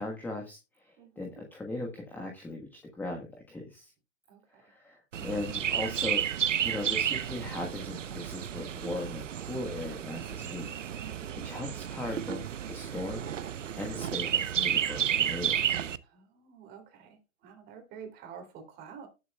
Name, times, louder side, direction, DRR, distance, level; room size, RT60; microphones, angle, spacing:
voice 1, 0.0-3.9 4.5-6.2 6.6-10.7 11.0-15.6, left 2 dB, 5° left, 1.2 m, -39 dB
voice 2, 1.0-1.4 4.3-4.6 11.0-11.5 16.0-19.1, right 7 dB, 25° right, 2.9 m, -49 dB
Chirp tweet, 5.1-16.0, right 9 dB, 60° right, 0.8 m, -32 dB
19.0 x 7.1 x 2.3 m
figure-of-eight pair, 125°, 41 cm